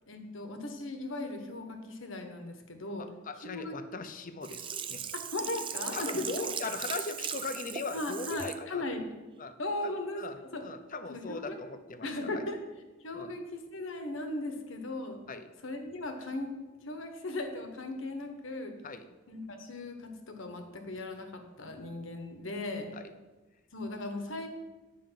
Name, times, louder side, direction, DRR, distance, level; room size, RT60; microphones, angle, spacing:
voice 1, 0.1-3.0 3.4-3.8 5.3-6.3 7.9-9.1 9.6-10.2 10.5-10.6 11.1-11.6 12.0-12.6 13.0-15.2 15.6-16.5 16.9-18.7 19.3-22.9 23.7-24.5, left 2 dB, 65° left, 6 dB, 1.3 m, -37 dB
voice 2, 3.0-5.0 5.9-8.8 9.4-9.6 10.2-12.4 13.1-13.3 15.3-15.5 18.8-19.1 22.9-23.1, left 3 dB, 40° left, 9 dB, 0.7 m, -39 dB
Sink (filling or washing), 4.4-8.6 9.1-9.2, right 8 dB, 25° right, 0.4 m, -38 dB
9.2 x 5.2 x 7.4 m, 1.2 s
head